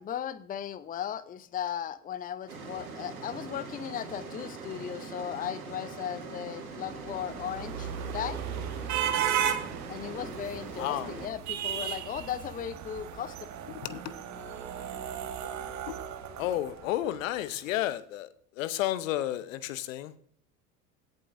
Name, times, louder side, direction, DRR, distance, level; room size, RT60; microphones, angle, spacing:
voice 1, 0.0-8.4 9.9-13.4, left 9 dB, 20° left, 15 dB, 0.6 m, -37 dB
sound 1, 2.5-11.3, right 4 dB, 85° right, 2.3 m, -42 dB
sound 2, 6.8-17.1, right 9 dB, 40° right, 1.4 m, -35 dB
voice 2, 10.7-11.1 13.7-14.1 15.9-16.0 16.4-18.3 18.6-20.2, left 13 dB, 65° left, 16 dB, 0.8 m, -32 dB
17.0 x 7.9 x 2.6 m, 0.62 s
hypercardioid pair, 75°, 42 cm